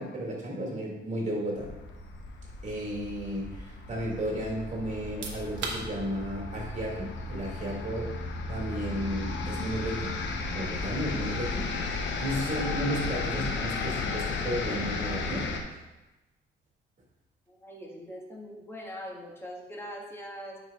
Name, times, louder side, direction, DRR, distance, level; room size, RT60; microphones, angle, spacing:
voice 1, 0.0-1.7 2.6-8.1 8.5-10.1 10.5-15.5, equal, 35° right, -2 dB, 2.2 m, -33 dB
sound 1, 1.6-15.6, left 3 dB, 70° left, 0.8 m, -34 dB
sound 2, 5.0-17.6, right 4 dB, 65° right, 1.1 m, -48 dB
voice 2, 17.5-20.6, equal, 10° left, -3 dB, 1.5 m, -42 dB
9.3 x 4.7 x 2.4 m, 1.1 s
cardioid pair, 90°, 20 cm